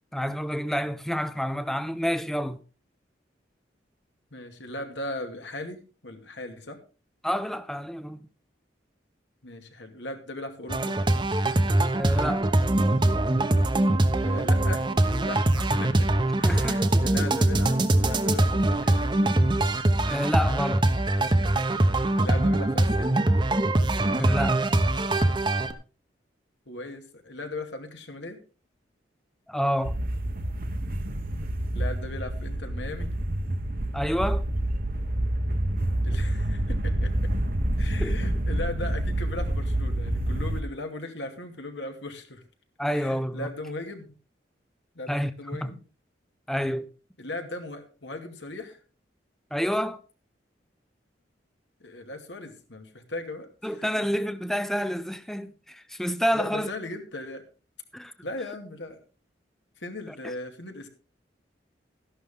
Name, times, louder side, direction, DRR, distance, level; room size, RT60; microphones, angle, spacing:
voice 1, 0.1-2.6 7.2-8.3 12.0-12.5 15.7-15.8 16.4-17.3 20.0-20.9 24.1-24.6 29.5-30.0 33.9-34.4 38.0-38.1 42.8-43.5 45.1-45.3 45.6-45.7 46.5-46.9 49.5-50.0 53.6-56.7 57.9-58.1, equal, ahead, 0.5 m, -28 dB
voice 2, 4.3-6.8 9.4-11.0 14.2-16.1 16.4-19.0 22.2-23.1 26.7-28.4 31.7-33.1 36.0-37.1 37.8-42.4 42.9-44.1 44.9-45.8 47.2-48.8 51.8-54.1 56.3-57.4 58.2-59.0 59.8-60.9, left 2 dB, 85° left, 2.4 m, -38 dB
sound 1, 10.7-25.7, right 1 dB, 25° right, 0.9 m, -23 dB
sound 2, 29.8-40.6, right 1 dB, 50° right, 1.1 m, -28 dB
13.5 x 11.5 x 3.7 m
head